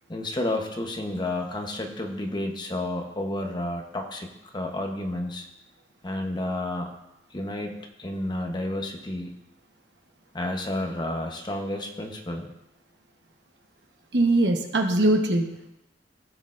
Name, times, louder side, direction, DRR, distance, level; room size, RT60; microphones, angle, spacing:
voice 1, 0.1-5.5 6.0-6.9 7.3-9.4 10.3-12.5, left 1 dB, 25° left, 3 dB, 0.9 m, -31 dB
voice 2, 14.1-15.7, right 2 dB, 65° right, 3 dB, 1.1 m, -22 dB
16.5 x 6.2 x 2.5 m, 0.91 s
head